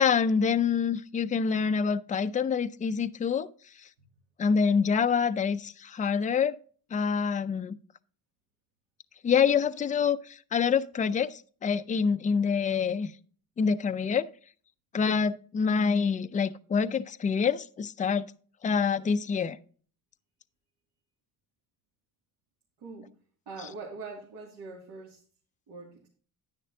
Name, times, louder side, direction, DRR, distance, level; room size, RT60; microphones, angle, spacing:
voice 1, 0.0-3.5 4.4-6.6 6.9-7.8 9.2-13.1 13.6-14.3 14.9-18.3 18.6-19.6, left 6 dB, 20° left, 11 dB, 0.4 m, -26 dB
voice 2, 22.8-23.1 23.5-25.2 25.7-26.1, right 4 dB, 80° right, -1 dB, 2.5 m, -43 dB
10.0 x 9.7 x 2.7 m, 0.43 s
cardioid pair, 140°, 38 cm